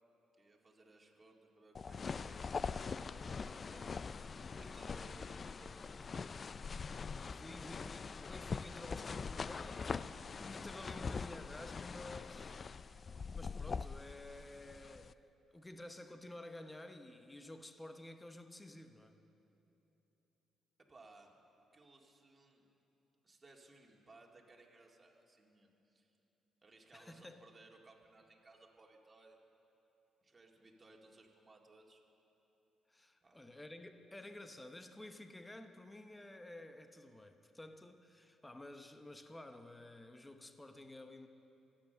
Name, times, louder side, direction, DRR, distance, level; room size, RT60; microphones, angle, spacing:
voice 1, 0.4-3.9 4.3-6.3 20.8-21.4 21.7-22.7 23.2-26.1 26.6-29.4 30.2-32.0 33.2-33.4, right 2 dB, 30° right, 0 dB, 2.1 m, -62 dB
sound 1, 1.7-15.1, left 5 dB, 40° left, 0.3 m, -43 dB
voice 2, 7.2-19.2 26.9-27.4 32.9-41.3, left 1 dB, 15° left, 7 dB, 0.8 m, -52 dB
24.5 x 8.6 x 6.8 m, 3.0 s
cardioid pair, 90°, 0 cm